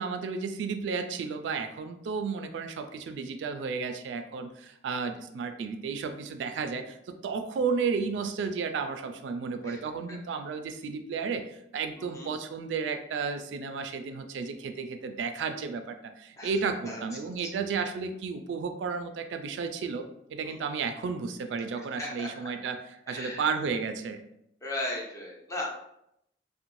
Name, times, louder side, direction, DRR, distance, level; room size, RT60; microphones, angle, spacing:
voice 1, 0.0-24.2, right 5 dB, 85° right, 7 dB, 0.3 m, -33 dB
voice 2, 12.0-12.3 16.4-16.5 16.9-17.0 20.5-20.6 22.0-22.3 23.1-23.4 24.6-25.7, left 1 dB, 15° left, -2 dB, 0.5 m, -36 dB
2.5 x 2.1 x 3.0 m, 0.79 s
head